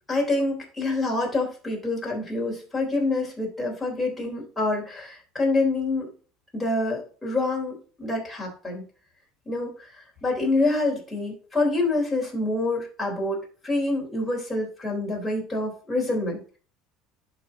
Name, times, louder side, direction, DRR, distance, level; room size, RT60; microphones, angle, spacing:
voice 1, 0.1-6.1 6.5-8.8 9.5-9.7 10.2-13.4 13.6-16.4, left 2 dB, 5° left, -2 dB, 3.5 m, -26 dB
11.0 x 4.2 x 3.7 m, 0.39 s
cardioid pair, 135°, 0 cm